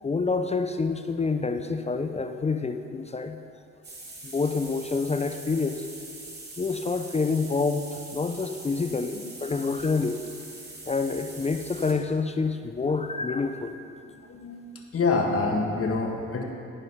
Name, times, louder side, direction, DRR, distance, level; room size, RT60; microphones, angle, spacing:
voice 1, 0.0-3.4 4.2-5.9 6.6-10.2 10.8-13.8, left 4 dB, 20° left, 8 dB, 0.5 m, -27 dB
sound 1, 3.8-11.9, right 2 dB, 35° right, 2.5 m, -43 dB
voice 2, 14.0-16.4, left 3 dB, 50° left, 1 dB, 1.6 m, -27 dB
14.5 x 5.4 x 5.5 m, 2.5 s
cardioid pair, 90°, 30 cm